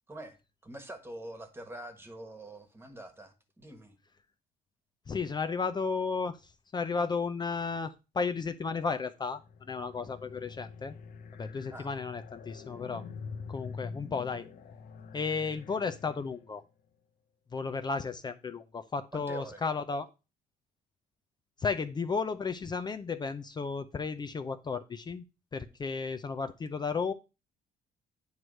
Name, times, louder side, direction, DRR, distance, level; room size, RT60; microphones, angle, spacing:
voice 1, 0.6-4.0 11.7-11.9 19.1-19.6, right 1 dB, 15° right, 1.5 m, -45 dB
voice 2, 5.1-9.4 9.7-10.9 11.4-13.0 13.5-14.4 15.1-16.6 17.5-20.1 21.6-25.2 25.5-27.1, left 5 dB, 25° left, 0.5 m, -33 dB
sound 1, 9.3-16.6, left 5 dB, 55° left, 0.8 m, -46 dB
9.4 x 3.2 x 6.3 m
cardioid pair, 110°, 17 cm